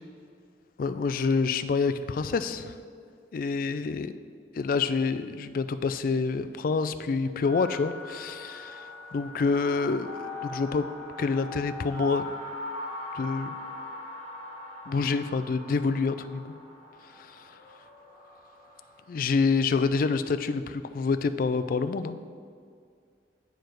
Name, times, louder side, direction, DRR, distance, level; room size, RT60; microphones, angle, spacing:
voice 1, 0.8-2.8 3.3-4.1 4.5-10.9 11.2-12.4 13.1-13.6 14.9-16.4 17.1-17.6 19.1-22.2, left 4 dB, 50° left, 11 dB, 0.3 m, -27 dB
sound 1, 7.4-19.1, left 2 dB, 35° right, 1.3 m, -41 dB
9.1 x 4.7 x 4.6 m, 2.2 s
head